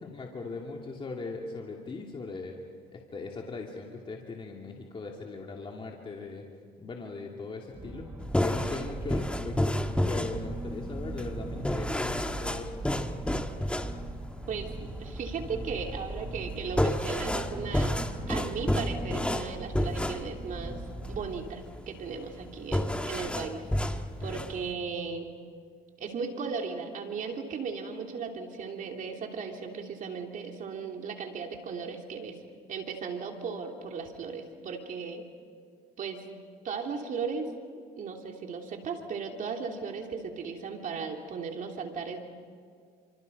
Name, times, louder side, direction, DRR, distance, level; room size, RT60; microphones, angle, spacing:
voice 1, 0.0-2.5 2.9-6.5 6.8-9.8 10.1-12.8, left 3 dB, 30° left, 0 dB, 2.6 m, -39 dB
sound 1, 7.7-21.4, right 2 dB, 15° right, 1.6 m, -40 dB
sound 2, 8.2-24.7, left 1 dB, 5° left, 1.4 m, -31 dB
voice 2, 14.5-20.8 21.1-25.3 26.0-32.4 32.7-35.2 36.0-36.2 36.6-37.5 38.0-42.2, right 5 dB, 50° right, 2 dB, 3.0 m, -36 dB
30.0 x 26.0 x 5.4 m, 2.1 s
cardioid pair, 110°, 17 cm